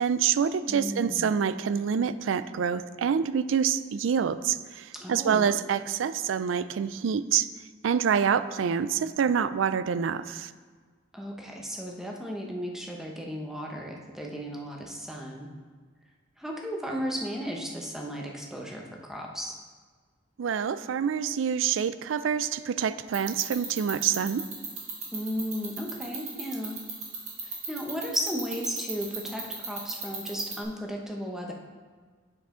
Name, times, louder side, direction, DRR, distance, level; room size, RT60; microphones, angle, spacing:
voice 1, 0.0-7.5 7.8-10.5 20.4-24.4, right 7 dB, 75° right, 14 dB, 0.4 m, -26 dB
voice 2, 0.7-1.3 4.9-5.5 11.1-15.5 16.4-19.6 25.1-26.8 27.4-31.5, equal, ahead, -1 dB, 0.9 m, -35 dB
sound 1, 23.1-30.6, right 6 dB, 35° right, 1.8 m, -34 dB
7.9 x 7.2 x 3.8 m, 1.5 s
head